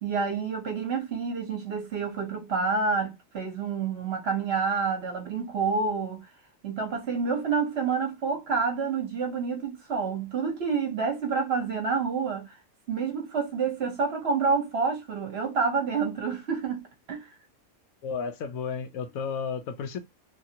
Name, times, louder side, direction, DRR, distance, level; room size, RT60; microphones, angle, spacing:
voice 1, 0.0-6.3 6.6-12.6 12.9-17.3, right 5 dB, 55° right, 1.0 m, -28 dB
voice 2, 18.0-20.0, left 6 dB, 75° left, 1.0 m, -32 dB
2.8 x 2.5 x 2.7 m
omnidirectional pair, 1.5 m